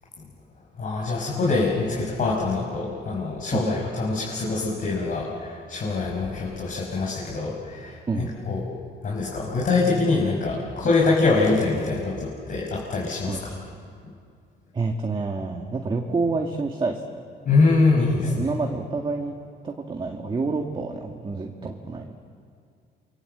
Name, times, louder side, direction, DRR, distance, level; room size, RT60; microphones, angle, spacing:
voice 1, 0.8-8.6 9.0-13.5 17.4-18.5, left 3 dB, 45° left, -3 dB, 5.6 m, -24 dB
voice 2, 14.7-17.2 18.2-19.3 19.6-22.2, right 3 dB, 25° right, 2 dB, 1.9 m, -28 dB
28.0 x 25.0 x 8.0 m, 2.3 s
cardioid pair, 115°, 19 cm